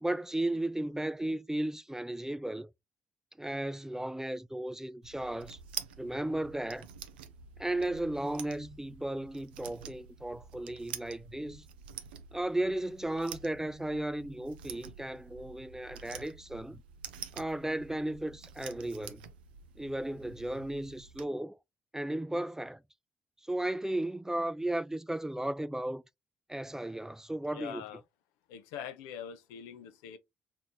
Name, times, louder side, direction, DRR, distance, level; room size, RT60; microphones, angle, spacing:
voice 1, 0.0-2.7 3.4-5.6 6.0-6.9 7.6-11.6 12.3-16.8 17.3-19.2 19.8-21.6 21.9-22.8 23.5-26.0 26.5-27.8, right 1 dB, 10° right, 0.4 m, -35 dB
sound 1, 5.0-21.2, right 8 dB, 85° right, 0.3 m, -48 dB
voice 2, 27.5-28.0 28.5-30.2, left 8 dB, 80° left, 0.5 m, -43 dB
4.2 x 3.0 x 2.3 m
hypercardioid pair, 40°, 5 cm